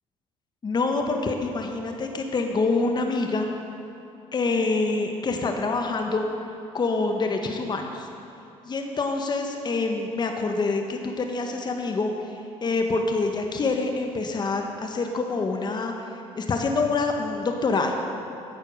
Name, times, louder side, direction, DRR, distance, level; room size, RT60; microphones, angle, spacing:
voice 1, 0.6-3.5 4.3-6.2 6.7-8.1 8.6-12.1 12.6-15.9 16.3-18.0, left 3 dB, 35° left, 4 dB, 1.1 m, -26 dB
9.5 x 8.3 x 6.4 m, 2.8 s
supercardioid pair, 75°, 13 cm